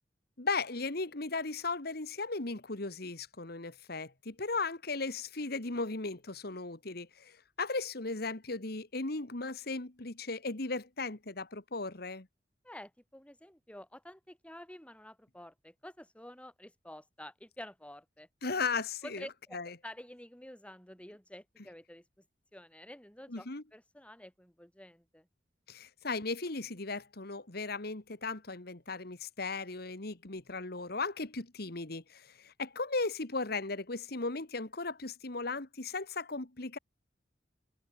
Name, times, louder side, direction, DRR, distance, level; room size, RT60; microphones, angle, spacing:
voice 1, 0.4-12.3 18.4-19.3 19.5-19.7 23.3-23.6 25.7-36.8, left 3 dB, 60° left, 2.0 m, -36 dB
voice 2, 12.6-18.3 19.0-19.6 19.8-22.2 22.5-25.3, left 1 dB, 5° left, 4.7 m, -50 dB
head